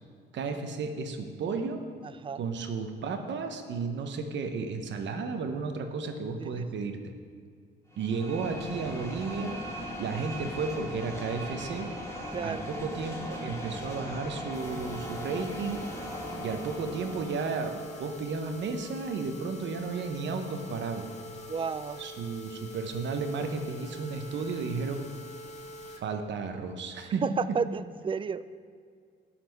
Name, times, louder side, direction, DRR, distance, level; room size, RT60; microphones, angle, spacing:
voice 1, 0.3-1.8 2.3-7.1 8.0-9.6 10.0-11.9 12.4-15.8 16.4-21.0 22.0-25.1 25.9-27.6, right 4 dB, 65° right, 6 dB, 1.0 m, -33 dB
voice 2, 6.4-6.9 12.3-12.6 21.5-22.0 27.2-28.4, right 6 dB, 25° right, 14 dB, 0.4 m, -32 dB
sound 1, 7.9-17.7, equal, 15° left, 1.7 m, -39 dB
sound 2, 14.5-26.0 26.5-26.6 27.0-27.1 27.5-27.6, equal, 35° left, 1.1 m, -44 dB
12.0 x 4.3 x 5.4 m, 2.1 s
cardioid pair, 90°, 20 cm